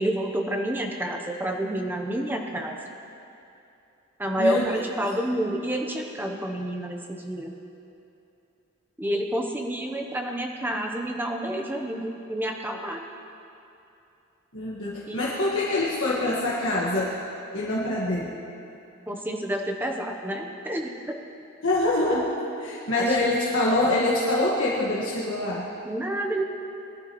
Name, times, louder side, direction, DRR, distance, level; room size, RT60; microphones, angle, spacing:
voice 1, 0.0-2.8 4.2-7.5 9.0-13.0 15.1-15.3 19.1-21.2 23.0-23.2 25.8-26.4, right 1 dB, 10° right, 2 dB, 0.9 m, -29 dB
voice 2, 4.4-4.8 14.5-17.1 17.5-18.3 21.6-22.3 22.6-25.7, left 2 dB, 60° left, -6 dB, 1.6 m, -25 dB
20.5 x 11.5 x 3.1 m, 2.8 s
head